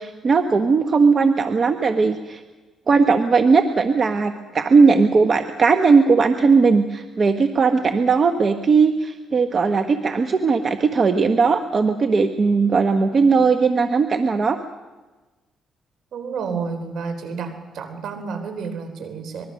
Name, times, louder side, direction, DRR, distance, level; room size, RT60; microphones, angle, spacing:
voice 1, 0.0-2.4 2.9-14.6, right 4 dB, 40° right, 7 dB, 1.3 m, -18 dB
voice 2, 16.1-19.5, right 5 dB, 75° right, 8 dB, 3.8 m, -30 dB
24.5 x 21.5 x 6.5 m, 1.2 s
cardioid pair, 90°, 0 cm